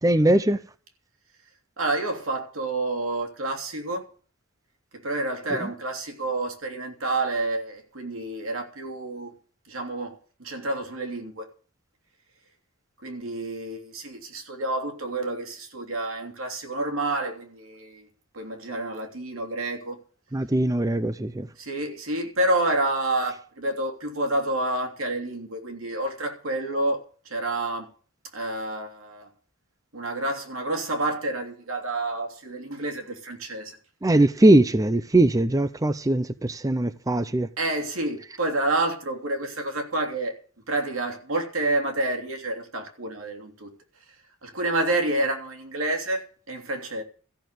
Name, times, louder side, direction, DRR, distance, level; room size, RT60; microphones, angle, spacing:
voice 1, 0.0-0.6 5.6-5.7 20.3-21.5 34.0-37.5, right 1 dB, 15° right, 0.6 m, -21 dB
voice 2, 1.8-4.0 4.9-9.3 9.7-11.5 13.0-18.1 18.3-20.0 21.6-27.9 28.3-29.3 29.9-33.8 37.6-40.3 40.7-43.7 44.4-47.0, right 2 dB, 90° right, 3.2 m, -29 dB
14.0 x 6.8 x 9.3 m
head